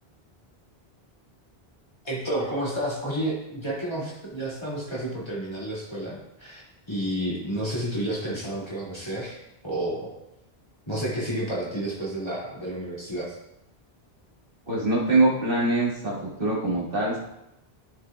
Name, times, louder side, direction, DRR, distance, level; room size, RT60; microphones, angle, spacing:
voice 1, 2.0-6.6 6.9-9.4 9.6-10.1 10.9-13.4, right 1 dB, 25° left, -7 dB, 2.4 m, -30 dB
voice 2, 14.7-17.2, right 2 dB, 60° right, -5 dB, 2.0 m, -23 dB
11.5 x 6.4 x 2.3 m, 0.85 s
omnidirectional pair, 1.1 m